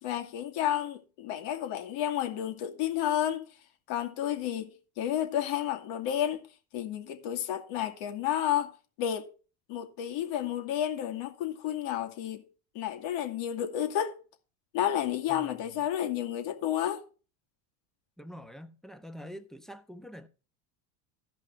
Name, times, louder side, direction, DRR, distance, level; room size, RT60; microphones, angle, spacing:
voice 1, 0.0-3.4 3.9-6.4 6.7-8.7 9.0-9.3 9.7-12.4 12.7-14.2 14.7-17.0, left 10 dB, 65° left, 2.5 m, -31 dB
voice 2, 15.3-15.8 18.2-20.3, equal, ahead, 1.1 m, -46 dB
15.0 x 5.5 x 4.6 m
supercardioid pair, 100°, 49 cm